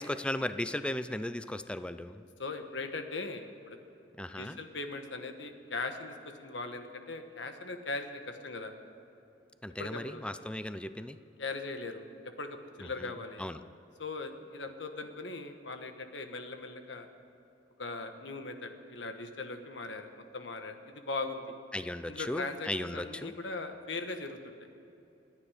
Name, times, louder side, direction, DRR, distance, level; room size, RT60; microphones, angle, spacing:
voice 1, 0.0-2.2 4.2-4.6 9.6-11.2 12.8-13.1 13.4-13.6 21.7-23.3, left 1 dB, 5° left, 11 dB, 0.4 m, -36 dB
voice 2, 2.4-3.8 4.4-8.7 9.8-10.2 11.4-13.4 14.0-17.1 17.8-21.5 22.1-24.5, left 3 dB, 80° left, 6 dB, 1.3 m, -39 dB
28.0 x 9.7 x 5.0 m, 2.8 s
head